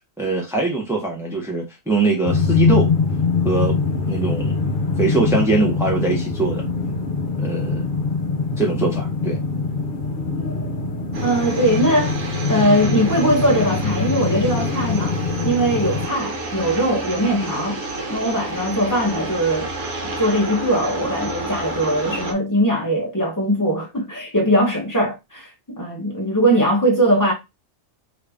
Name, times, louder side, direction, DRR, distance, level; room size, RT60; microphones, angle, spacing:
voice 1, 0.2-2.9 3.4-3.8 4.1-4.6 5.0-6.6 7.4-7.8 8.6-9.4, right 3 dB, 5° right, 0.3 m, -22 dB
sound 1, 2.3-16.1, left 4 dB, 55° left, 0.6 m, -23 dB
sound 2, 11.1-22.3, right 2 dB, 65° right, 1.0 m, -30 dB
voice 2, 11.2-12.1 12.5-17.8 18.1-19.7 20.0-27.3, right 1 dB, 15° left, 0.9 m, -20 dB
2.9 x 2.5 x 3.4 m
omnidirectional pair, 1.4 m